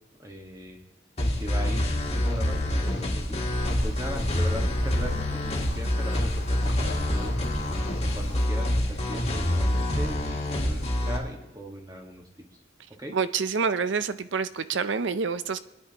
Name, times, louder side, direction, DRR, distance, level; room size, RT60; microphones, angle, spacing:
voice 1, 0.2-0.8 1.4-3.4 3.8-7.6 8.1-12.2 13.0-13.2, equal, 20° right, 1 dB, 1.6 m, -39 dB
sound 1, 1.2-11.2, left 1 dB, 35° left, 1.9 m, -26 dB
sound 2, 3.4-8.5, left 1 dB, 90° left, 3.0 m, -39 dB
voice 2, 13.1-15.6, right 5 dB, 75° right, 13 dB, 0.6 m, -27 dB
22.0 x 10.0 x 3.0 m, 0.99 s
head